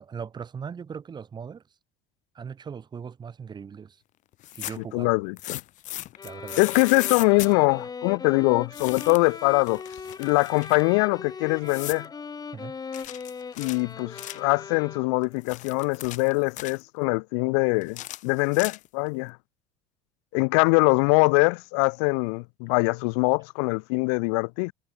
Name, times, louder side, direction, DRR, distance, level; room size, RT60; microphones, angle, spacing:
voice 1, 0.0-1.6 2.3-4.0 4.5-5.1 6.2-6.6 12.5-12.7, right 6 dB, 30° right, 1.4 m, -39 dB
sound 1, 4.3-4.9 5.4-7.5 8.7-9.3 9.6-10.8 11.7-12.1 12.9-14.5 15.2-16.8 17.8-19.1, left 15 dB, 55° left, 1.2 m, -37 dB
voice 2, 4.9-5.6 6.6-9.8 10.2-12.1 13.6-19.4 20.3-24.7, left 36 dB, 75° left, 0.5 m, -23 dB
sound 2, 6.2-15.4, left 5 dB, 25° left, 2.5 m, -39 dB
Meow / Hiss, 7.3-7.9 9.2-9.8 11.1-12.4, right 34 dB, 75° right, 5.0 m, -61 dB
supercardioid pair, 90°, 15 cm